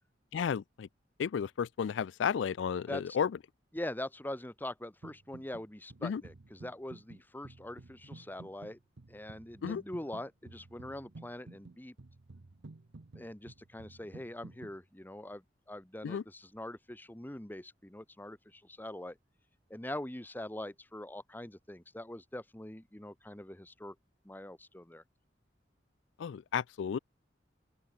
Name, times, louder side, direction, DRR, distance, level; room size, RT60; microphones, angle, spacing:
voice 1, 0.3-0.9 1.2-3.3 6.0-6.2 9.6-9.8 16.0-16.2 26.2-27.0, left 7 dB, 90° left, 0.4 m, -33 dB
voice 2, 3.7-8.8 9.1-11.9 13.1-19.2 19.7-24.0 24.2-25.0, left 1 dB, 10° left, 1.1 m, -43 dB
sound 1, 5.0-5.6 5.9-14.8, right 2 dB, 75° right, 0.9 m, -52 dB
open air
head